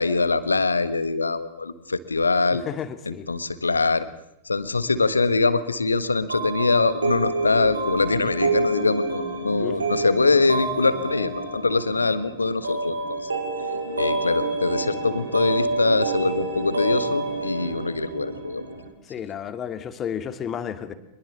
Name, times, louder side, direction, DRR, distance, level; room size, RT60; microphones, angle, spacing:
voice 1, 0.0-2.6 3.0-4.1 4.4-13.3 14.0-18.6, left 3 dB, 80° left, 14 dB, 1.6 m, -23 dB
voice 2, 2.7-3.3 9.6-9.9 19.1-20.9, left 8 dB, 25° left, 10 dB, 2.4 m, -32 dB
sound 1, 6.3-18.9, right 3 dB, 75° right, 5.6 m, -28 dB
24.5 x 21.5 x 7.3 m, 0.82 s
figure-of-eight pair, 90°, 0 cm